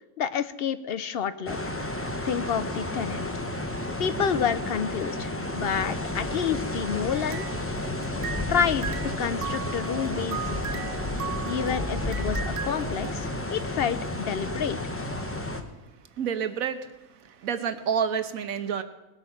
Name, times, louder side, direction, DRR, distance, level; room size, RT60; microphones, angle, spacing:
voice 1, 0.2-1.6 2.2-3.3 4.0-7.4 8.5-10.9 11.5-14.8, left 7 dB, 60° left, 13 dB, 0.7 m, -29 dB
sound 1, 1.5-15.6, left 1 dB, 10° left, 0.8 m, -31 dB
sound 2, 7.1-8.6 8.8-13.1, right 7 dB, 55° right, 0.7 m, -38 dB
voice 2, 16.2-16.8 17.3-18.8, right 7 dB, 85° right, 10 dB, 1.4 m, -28 dB
19.0 x 8.3 x 5.9 m, 1.0 s
omnidirectional pair, 1.4 m